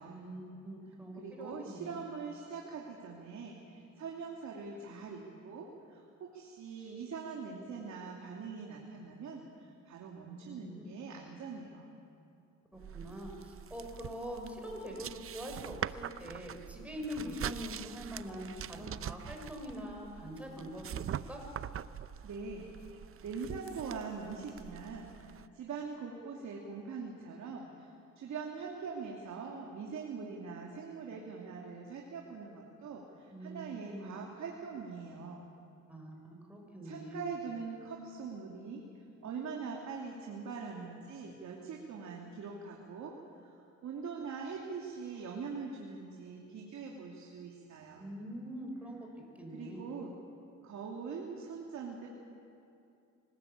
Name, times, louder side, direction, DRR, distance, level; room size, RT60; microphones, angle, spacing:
voice 1, 0.0-2.0 10.4-11.0 12.7-21.0 21.3-21.4 33.3-34.1 35.9-37.3 48.0-49.9, equal, 5° right, 1 dB, 6.6 m, -44 dB
voice 2, 1.2-11.8 22.2-22.7 23.2-25.1 25.5-27.9 28.2-35.5 36.8-38.8 39.2-43.2 43.4-48.1 49.5-50.1 50.6-52.1, right 5 dB, 65° right, -1 dB, 3.1 m, -43 dB
sound 1, 12.8-25.5, right 9 dB, 45° right, 0.7 m, -44 dB
25.0 x 19.5 x 8.6 m, 2.6 s
cardioid pair, 90°, 30 cm